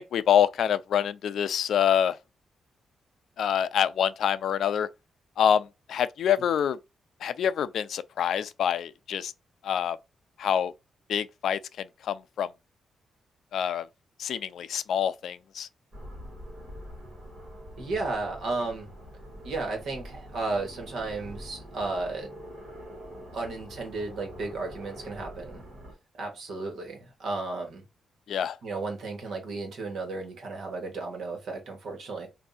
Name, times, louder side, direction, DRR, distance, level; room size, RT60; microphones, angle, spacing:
voice 1, 0.0-2.2 3.4-4.9 5.4-6.8 7.2-9.3 9.6-10.0 10.4-10.7 11.1-12.5 13.5-13.9 14.2-15.7 28.3-28.6, left 9 dB, 70° left, 0.3 m, -26 dB
sound 1, 15.9-25.9, equal, 45° right, 1.9 m, -44 dB
voice 2, 17.8-18.9 19.4-22.3 23.3-25.7 26.2-27.8 28.6-32.3, right 3 dB, 65° right, 1.4 m, -34 dB
3.4 x 2.6 x 4.1 m
wide cardioid pair, 155°, 0 cm